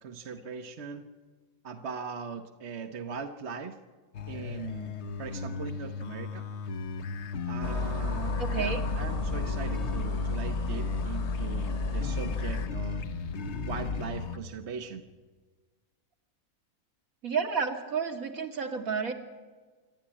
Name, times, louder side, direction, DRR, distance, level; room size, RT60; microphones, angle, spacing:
voice 1, 0.0-1.0 1.6-3.8 4.3-6.4 7.5-13.0 13.7-15.0, right 5 dB, 50° right, 6 dB, 1.3 m, -40 dB
sound 1, 4.1-14.4, left 4 dB, 55° left, 1.1 m, -36 dB
sound 2, 7.6-12.7, left 3 dB, 30° left, 1.0 m, -32 dB
voice 2, 8.4-8.8 17.2-19.1, right 5 dB, 70° right, 4 dB, 2.4 m, -31 dB
27.0 x 12.0 x 10.0 m, 1.4 s
omnidirectional pair, 1.5 m